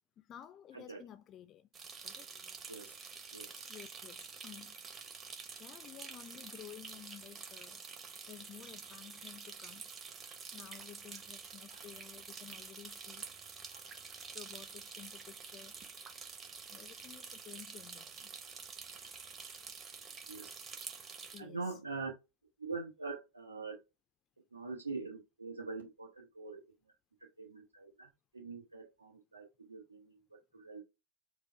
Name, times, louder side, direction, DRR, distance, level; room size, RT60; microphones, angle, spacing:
voice 1, 0.2-1.7 2.0-2.3 3.6-4.8 5.6-7.8 8.3-9.8 10.5-13.2 14.3-15.7 16.7-18.3 21.3-21.6, left 10 dB, 30° left, 0.3 m, -53 dB
sound 1, 1.7-21.4, right 5 dB, 25° right, 0.9 m, -48 dB
voice 2, 21.4-22.1 22.6-23.8 24.5-26.6 27.4-30.8, right 4 dB, 80° right, 1.0 m, -44 dB
5.0 x 2.1 x 4.4 m
figure-of-eight pair, 90°, 0 cm